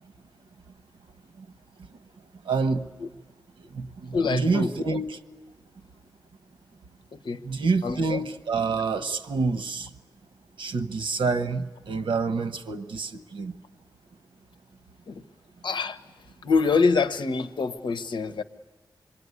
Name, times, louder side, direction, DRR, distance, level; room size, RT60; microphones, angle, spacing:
voice 1, 2.4-2.9 3.7-5.2 7.4-9.9 10.6-13.5, right 4 dB, 85° right, 1.1 m, -27 dB
voice 2, 4.1-5.0 7.1-7.4 7.8-8.2 15.1-15.2 15.6-16.0 16.4-18.4, left 4 dB, 70° left, 1.1 m, -25 dB
27.0 x 22.5 x 9.6 m
wide cardioid pair, 150°, 8 cm